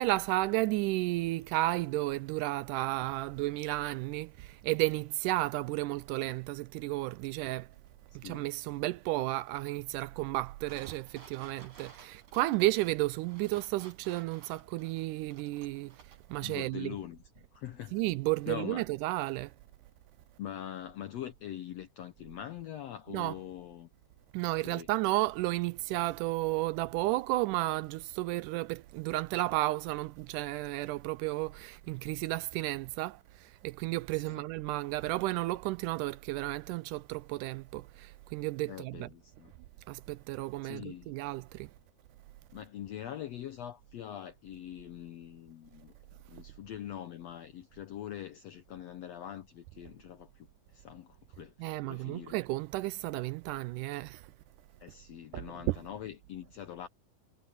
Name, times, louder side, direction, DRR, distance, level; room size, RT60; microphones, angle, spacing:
voice 1, 0.0-7.7 8.2-17.0 17.9-19.5 23.1-23.3 24.3-39.1 39.9-41.7 51.6-54.2 55.3-55.4 55.7-55.8, right 19 dB, 80° right, 1.9 m, -33 dB
voice 2, 8.1-8.4 16.4-17.2 17.5-18.0 18.5-18.8 20.4-23.9 24.6-24.9 34.1-34.4 38.7-39.5 40.6-41.1 42.5-45.9 46.3-50.5 50.7-52.4 54.8-56.9, left 11 dB, 75° left, 1.5 m, -43 dB
sound 1, 10.7-16.3 16.6-16.7, right 5 dB, 55° right, 7.1 m, -55 dB
omnidirectional pair, 4.0 m